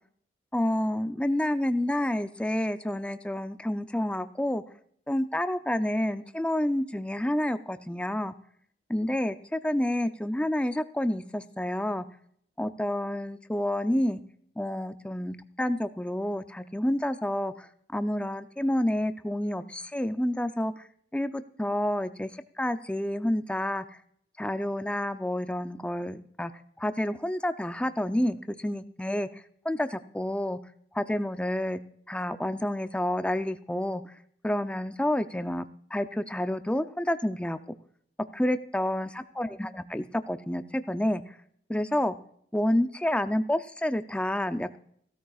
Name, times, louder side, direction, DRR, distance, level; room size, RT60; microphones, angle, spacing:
voice 1, 0.5-4.6 5.1-8.3 8.9-12.0 12.6-14.2 14.6-20.8 21.1-22.3 22.6-23.9 24.4-26.5 26.8-30.6 30.9-31.8 32.1-34.1 34.4-35.7 35.9-37.6 38.3-41.4 41.7-42.2 42.5-44.8, left 1 dB, 5° left, 10 dB, 0.4 m, -29 dB
16.5 x 13.0 x 2.4 m, 0.65 s
head